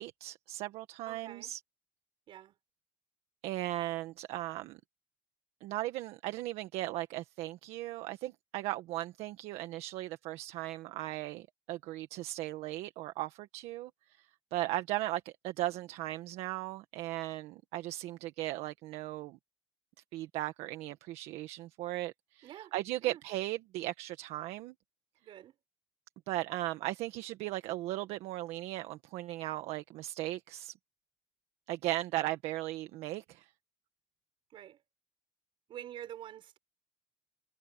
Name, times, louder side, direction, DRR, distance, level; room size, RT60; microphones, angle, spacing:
voice 1, 0.0-1.6 3.4-4.8 5.6-13.9 14.2-14.3 14.5-19.4 20.1-24.7 26.3-30.7 31.7-33.5, right 16 dB, 70° right, 1.6 m, -37 dB
voice 2, 1.1-1.5 2.3-2.5 22.4-22.7 23.0-23.2 25.2-25.5 34.5-34.8 35.7-36.6, right 11 dB, 50° right, 5.5 m, -47 dB
cardioid pair, 135°, 11 cm